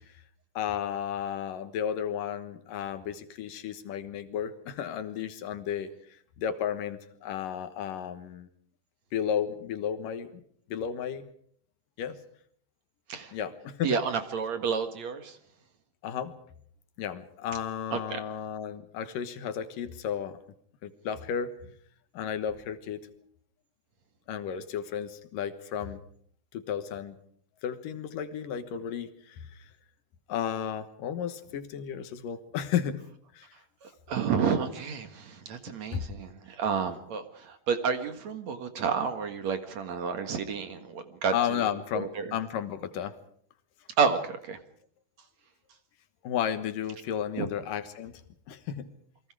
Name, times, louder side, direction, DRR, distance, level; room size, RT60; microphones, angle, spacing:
voice 1, 0.6-5.9 6.4-8.5 9.1-10.4 10.7-11.3 12.0-12.2 13.3-14.0 16.0-16.3 17.0-20.4 20.8-21.7 22.1-23.1 24.3-26.0 26.5-27.1 27.6-29.5 30.3-33.0 33.3-33.5 35.7-36.1 41.3-43.1 46.2-48.2 48.5-48.9, left 9 dB, 75° left, 10 dB, 2.9 m, -33 dB
voice 2, 13.8-15.4 17.9-18.2 33.8-42.3 44.0-44.6 47.4-47.5, right 6 dB, 55° right, 8 dB, 2.7 m, -30 dB
28.5 x 23.0 x 4.9 m, 0.62 s
omnidirectional pair, 4.1 m